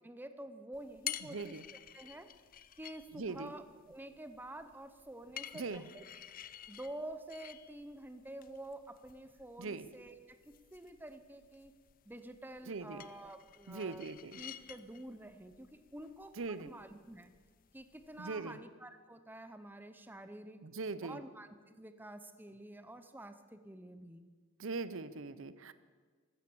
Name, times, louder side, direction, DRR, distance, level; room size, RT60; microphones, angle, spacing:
voice 1, 0.0-1.6 1.9-2.3 2.8-6.0 6.7-11.7 12.1-14.1 14.4-17.3 17.7-20.6 21.0-24.3, right 1 dB, 10° right, 10 dB, 0.7 m, -49 dB
sound 1, 0.7-18.2, left 11 dB, 40° left, 0.5 m, -51 dB
voice 2, 1.2-1.6 3.1-3.5 5.5-5.8 9.6-9.9 12.7-13.0 13.7-14.4 16.4-16.7 18.2-18.6 20.6-21.2 24.6-25.7, right 4 dB, 60° right, 14 dB, 0.7 m, -41 dB
15.5 x 13.0 x 6.9 m, 1.5 s
head